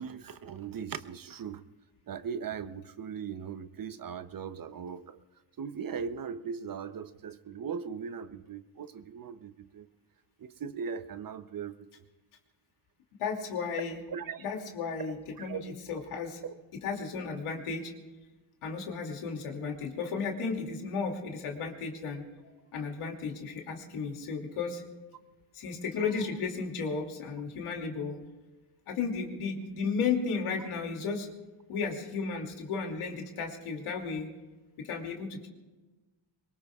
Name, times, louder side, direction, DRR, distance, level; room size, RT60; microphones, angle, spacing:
voice 1, 0.0-1.6 2.1-5.2 5.6-9.9 10.4-11.9 14.1-14.5 15.4-15.6, right 6 dB, 45° right, 12 dB, 0.8 m, -39 dB
voice 2, 13.2-14.0 14.4-16.4 16.8-17.9 18.6-22.2 22.7-24.8 25.5-28.2 28.9-31.3 31.7-34.3 34.8-35.5, left 5 dB, 85° left, 2 dB, 2.7 m, -34 dB
24.0 x 21.5 x 2.4 m, 1.2 s
cardioid pair, 95°, 49 cm